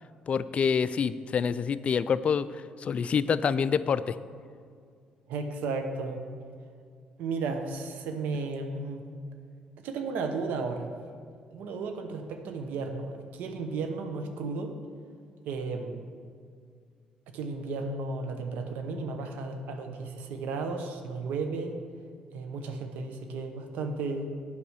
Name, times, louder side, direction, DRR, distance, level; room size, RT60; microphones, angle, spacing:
voice 1, 0.3-4.2, left 6 dB, 45° left, 15 dB, 0.3 m, -27 dB
voice 2, 5.3-6.2 7.2-9.0 9.8-10.9 11.5-14.7 15.4-16.0 17.3-21.8 22.3-24.3, right 4 dB, 80° right, 6 dB, 0.9 m, -34 dB
8.5 x 4.8 x 6.4 m, 2.2 s
supercardioid pair, 70°, 3 cm